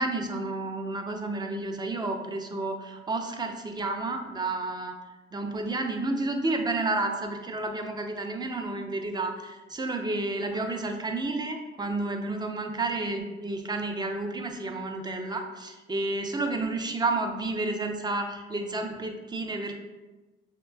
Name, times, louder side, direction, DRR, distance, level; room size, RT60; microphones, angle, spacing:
voice 1, 0.0-5.0 5.3-19.8, right 2 dB, 20° right, 4 dB, 0.5 m, -31 dB
5.6 x 2.9 x 2.2 m, 1.2 s
cardioid pair, 90°, 20 cm